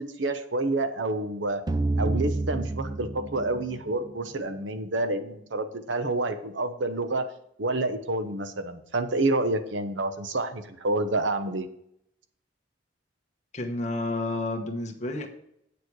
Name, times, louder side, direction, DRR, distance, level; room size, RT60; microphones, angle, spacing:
voice 1, 0.0-1.6 2.0-7.3 7.6-11.7, right 2 dB, 85° right, 9 dB, 0.9 m, -28 dB
sound 1, 1.7-4.6, right 2 dB, 20° right, 0.4 m, -29 dB
voice 2, 13.5-15.3, left 2 dB, 40° left, 2 dB, 1.2 m, -30 dB
8.3 x 6.9 x 4.7 m, 0.74 s
head